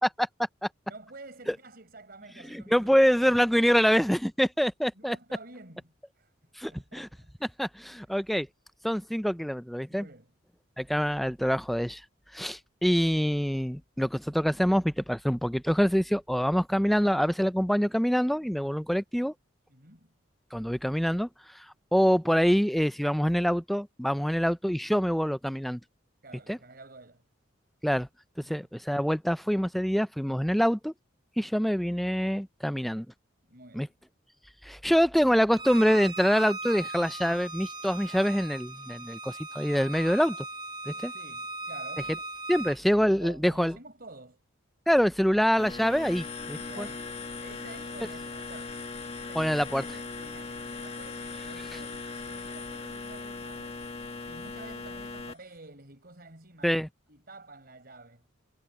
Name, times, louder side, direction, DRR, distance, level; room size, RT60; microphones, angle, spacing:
voice 1, 0.9-3.4 4.9-6.3 6.7-7.5 9.9-10.3 19.7-20.1 26.2-27.2 28.4-28.7 33.4-33.9 41.1-42.1 42.9-44.4 46.6-47.2 47.4-48.8 49.2-53.8 54.3-56.8 57.1-58.2, right 2 dB, 50° right, 4.8 m, -50 dB
voice 2, 2.5-5.2 6.6-7.1 7.6-8.5 8.8-10.1 10.8-12.0 12.3-19.3 20.5-21.3 21.5-21.7 21.9-25.8 26.5-26.6 27.8-28.1 28.5-30.9 31.4-33.1 33.7-33.9 34.6-40.4 40.9-41.1 42.5-43.7 44.9-46.9 49.4-49.8 56.6-56.9, equal, ahead, 0.5 m, -25 dB
Bowed string instrument, 35.5-42.8, right 2 dB, 20° right, 1.0 m, -39 dB
sound 1, 45.6-55.3, left 3 dB, 30° left, 1.8 m, -39 dB
head